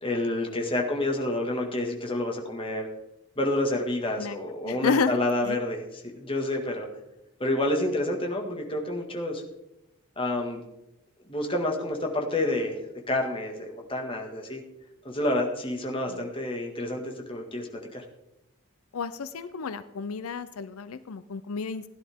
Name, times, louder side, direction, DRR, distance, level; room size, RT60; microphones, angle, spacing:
voice 1, 0.0-2.9 3.4-6.9 7.4-9.4 10.2-10.6 11.3-12.8 13.1-14.6 15.0-18.0, left 1 dB, 25° left, 2 dB, 1.8 m, -29 dB
voice 2, 4.6-5.6 16.1-16.2 18.9-21.8, left 5 dB, 85° left, 13 dB, 0.5 m, -31 dB
16.0 x 10.5 x 3.6 m, 0.91 s
head